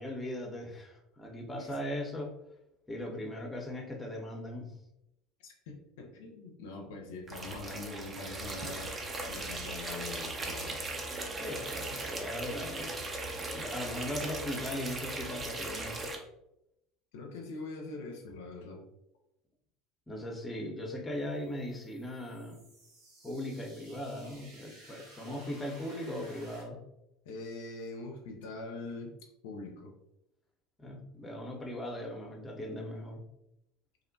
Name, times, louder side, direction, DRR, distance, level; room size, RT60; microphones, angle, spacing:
voice 1, 0.0-2.3 2.9-4.7 11.4-13.2 13.5-16.0 20.1-22.6 23.2-26.8 30.8-33.2, left 1 dB, 15° left, 1 dB, 0.6 m, -39 dB
voice 2, 5.4-8.9 9.3-10.8 17.1-18.8 27.3-29.1 29.4-29.9, left 3 dB, 70° left, 1 dB, 0.4 m, -43 dB
sound 1, 7.3-16.2, right 2 dB, 30° right, 0.5 m, -38 dB
sound 2, 21.1-26.6, right 1 dB, 70° right, 0.9 m, -56 dB
2.5 x 2.1 x 2.5 m, 0.85 s
hypercardioid pair, 70°, 0 cm